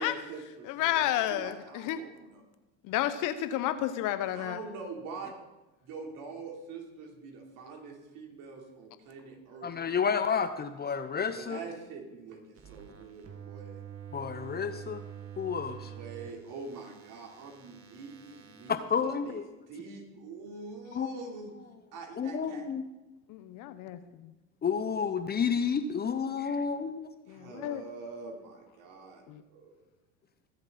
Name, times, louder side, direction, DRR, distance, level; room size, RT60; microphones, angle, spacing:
voice 1, 0.0-2.4 4.3-5.4 5.8-10.2 11.3-13.8 15.8-19.4 19.7-21.5 21.9-22.7 27.3-29.2 29.5-29.7, right 4 dB, 60° right, 0 dB, 4.0 m, -44 dB
voice 2, 0.7-2.0 2.8-4.6 23.3-24.3 27.3-27.8 29.3-29.4, left 13 dB, 55° left, 11 dB, 1.1 m, -31 dB
voice 3, 9.6-11.6 14.1-15.0 15.4-15.9 18.7-19.4 20.9-21.1 22.2-22.8 24.6-27.1, left 6 dB, 25° left, 10 dB, 0.9 m, -30 dB
sound 1, 12.6-18.8, right 9 dB, 40° right, 2.0 m, -47 dB
22.0 x 7.8 x 4.3 m, 1.1 s
hypercardioid pair, 85°, 37 cm